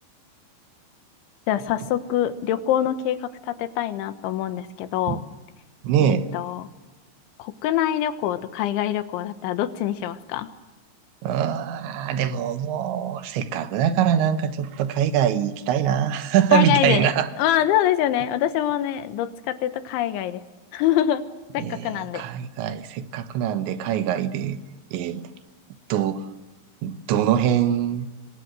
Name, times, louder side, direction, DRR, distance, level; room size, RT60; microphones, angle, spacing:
voice 1, 1.5-5.2 6.0-6.7 7.4-10.5 16.5-17.1 17.4-20.4 20.7-21.2 21.5-22.3, left 11 dB, 80° left, 3.6 m, -24 dB
voice 2, 5.8-6.3 11.2-17.3 21.6-24.6 24.9-25.2 25.9-26.3 26.8-28.1, right 9 dB, 75° right, 3.4 m, -23 dB
26.5 x 23.0 x 7.8 m
omnidirectional pair, 5.4 m